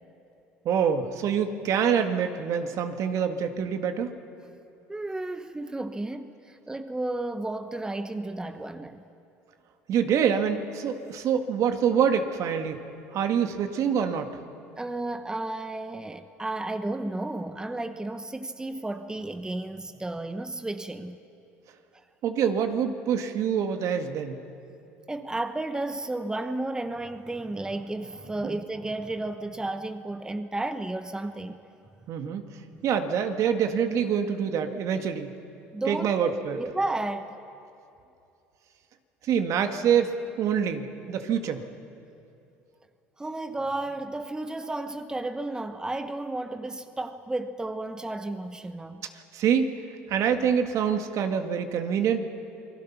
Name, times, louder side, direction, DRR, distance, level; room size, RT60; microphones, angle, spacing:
voice 1, 0.7-4.1 9.9-12.8 13.1-14.4 22.2-24.4 32.1-32.5 32.8-35.3 35.9-36.6 39.2-41.6 49.3-49.8 50.1-52.2, right 7 dB, 55° right, 2.0 m, -26 dB
voice 2, 4.9-9.0 14.8-21.2 25.1-31.6 32.7-32.8 35.7-36.1 36.5-37.3 43.2-49.0, right 2 dB, 10° right, 1.1 m, -33 dB
28.0 x 21.0 x 6.0 m
supercardioid pair, 80°, 6 cm